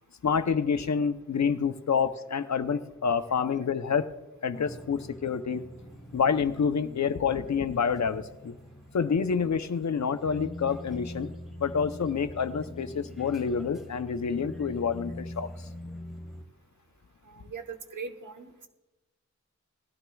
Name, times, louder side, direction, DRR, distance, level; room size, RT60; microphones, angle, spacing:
voice 1, 0.2-4.1 4.4-5.6 6.1-8.6 8.9-11.3 11.6-15.5, left 6 dB, 65° left, 11 dB, 0.7 m, -28 dB
sound 1, 4.5-16.4, left 1 dB, ahead, 1.7 m, -44 dB
voice 2, 17.2-18.7, right 5 dB, 75° right, 7 dB, 1.2 m, -40 dB
19.0 x 12.5 x 2.3 m, 1.1 s
cardioid pair, 50°, 31 cm